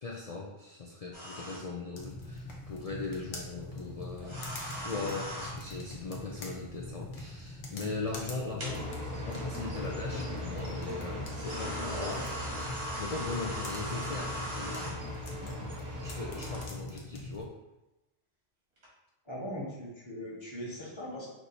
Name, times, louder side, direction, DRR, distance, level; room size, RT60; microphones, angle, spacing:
voice 1, 0.0-12.5 13.0-15.1 16.0-17.6, left 3 dB, 55° left, -2 dB, 0.4 m, -39 dB
sound 1, 1.1-1.6 4.2-5.5 8.1-8.2 8.6-8.7 10.1-10.2 11.3-14.9 18.8-18.9, equal, 75° right, 1.8 m, -39 dB
sound 2, 1.9-17.5, left 2 dB, 75° left, 1.1 m, -43 dB
sound 3, 8.6-16.6, left 1 dB, 40° right, 1.0 m, -40 dB
voice 2, 19.2-21.3, equal, 25° left, -4 dB, 1.2 m, -40 dB
4.6 x 2.6 x 4.1 m, 0.97 s
omnidirectional pair, 1.2 m